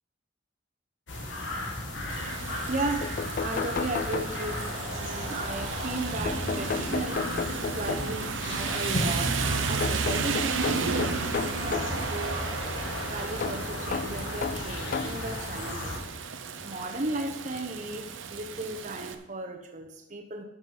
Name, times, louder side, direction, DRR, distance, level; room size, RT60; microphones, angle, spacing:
sound 1, 1.1-16.0, left 1 dB, 75° left, 2.0 m, -35 dB
Rain, 2.1-19.1, right 5 dB, 85° right, 0.8 m, -34 dB
voice 1, 2.7-7.3 7.8-12.5 13.1-16.0 16.6-20.4, right 2 dB, 40° right, 0.9 m, -35 dB
sound 2, 3.0-4.8 6.3-8.3 9.8-12.0 13.4-15.3 16.1-16.2 17.6-17.7 18.0-18.1, left 5 dB, 45° left, 0.3 m, -33 dB
11.5 x 6.0 x 5.5 m
head